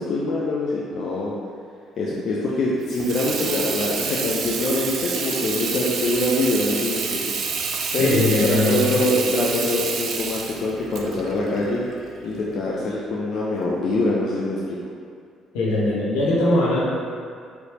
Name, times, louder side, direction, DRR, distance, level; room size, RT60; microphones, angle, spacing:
voice 1, 0.0-1.3 2.0-7.2 7.9-11.8 12.2-14.8, left 2 dB, 60° left, -5 dB, 0.5 m, -24 dB
Water tap faucet / Sink (filling or washing), 2.8-12.4, right 5 dB, 60° right, 0.5 m, -28 dB
voice 2, 8.0-9.0 15.5-16.8, left 1 dB, 85° left, -7 dB, 1.1 m, -20 dB
5.0 x 3.2 x 3.1 m, 2.2 s
hypercardioid pair, 60°, 0 cm